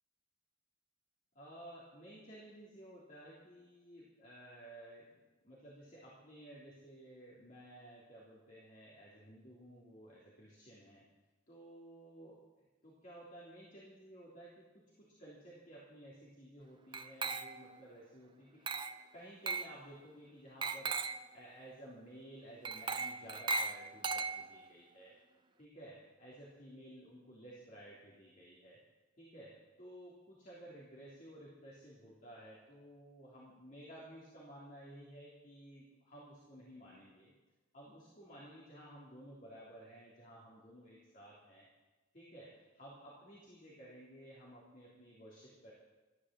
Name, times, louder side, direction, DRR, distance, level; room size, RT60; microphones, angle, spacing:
voice 1, 1.3-5.1 5.4-11.0 11.5-18.6 19.1-21.0 21.3-25.1 25.6-28.8 29.2-29.5 29.8-37.3 37.7-41.7 42.1-45.7, right 1 dB, 40° left, -7 dB, 3.3 m, -54 dB
Glass, 16.9-17.8 18.7-19.0 19.5-19.8 20.6-21.3 22.6-24.7, right 4 dB, 25° right, 0.5 m, -38 dB
14.5 x 11.5 x 7.6 m, 1.2 s
head